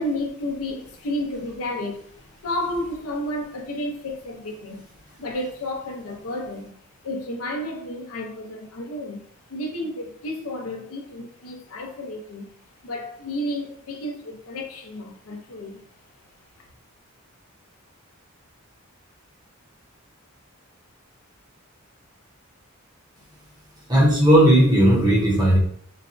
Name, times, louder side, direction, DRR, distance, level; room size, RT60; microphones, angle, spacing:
voice 1, 0.0-4.9 5.2-6.8 7.0-12.5 12.8-15.8, left 1 dB, 80° left, 2 dB, 0.6 m, -31 dB
voice 2, 23.9-25.6, right 1 dB, 20° right, -4 dB, 0.7 m, -16 dB
4.0 x 2.1 x 2.5 m, 0.63 s
head